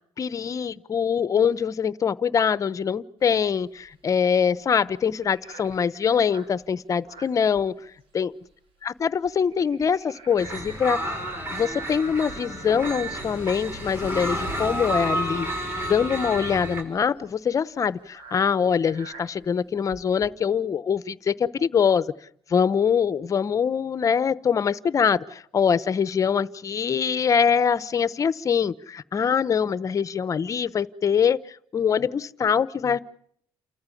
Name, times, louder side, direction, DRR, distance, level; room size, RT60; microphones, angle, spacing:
voice 1, 0.2-7.7 8.1-8.3 9.0-11.0 11.5-22.1 22.5-33.0, left 7 dB, 35° left, 17 dB, 0.9 m, -23 dB
sound 1, 3.2-8.2 8.4-8.7 9.0-11.7 12.2-20.3, right 3 dB, 75° right, 5.1 m, -47 dB
sound 2, 10.4-16.8, right 1 dB, 25° right, 6.1 m, -31 dB
29.0 x 14.5 x 8.5 m, 0.67 s
cardioid pair, 125°, 9 cm